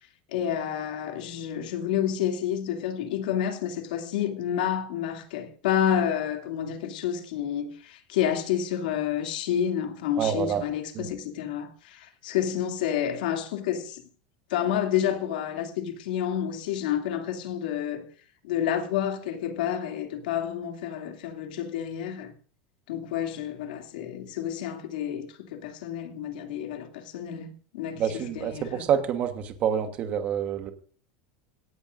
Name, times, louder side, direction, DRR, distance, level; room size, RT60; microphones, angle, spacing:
voice 1, 0.3-14.0 14.5-18.1 18.4-22.3 22.9-28.8, left 9 dB, 90° left, 2.5 m, -29 dB
voice 2, 10.2-10.6 10.9-11.1 28.0-30.7, right 8 dB, 30° right, 1.2 m, -27 dB
17.5 x 13.5 x 2.6 m
supercardioid pair, 170°, 5 cm